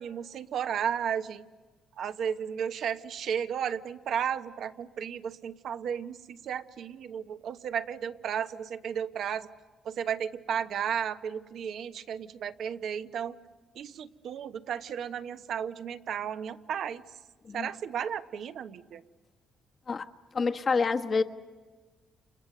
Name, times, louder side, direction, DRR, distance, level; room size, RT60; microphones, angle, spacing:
voice 1, 0.0-1.4 2.0-9.5 9.8-13.4 13.7-17.0 17.5-19.0, right 8 dB, 70° right, 9 dB, 1.1 m, -34 dB
voice 2, 20.3-21.2, left 4 dB, 40° left, 6 dB, 1.3 m, -27 dB
30.0 x 28.5 x 6.8 m, 1.4 s
cardioid pair, 90°, 0 cm